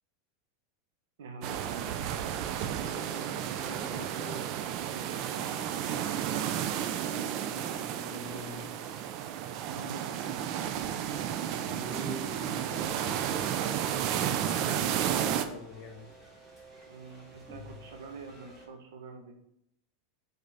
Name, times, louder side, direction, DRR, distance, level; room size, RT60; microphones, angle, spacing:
voice 1, 1.2-2.0 4.9-6.0 9.6-10.6 16.9-19.3, right 4 dB, 85° right, 3 dB, 1.3 m, -46 dB
sound 1, 1.4-15.5, right 10 dB, 50° right, 0.5 m, -32 dB
voice 2, 2.5-4.5 7.0-9.0 11.6-13.3 14.4-16.1, left 2 dB, 35° left, 1 dB, 1.5 m, -45 dB
sound 2, 12.8-18.7, left 1 dB, 20° right, 2.1 m, -50 dB
5.4 x 3.9 x 5.7 m, 0.73 s
supercardioid pair, 135°, 0 cm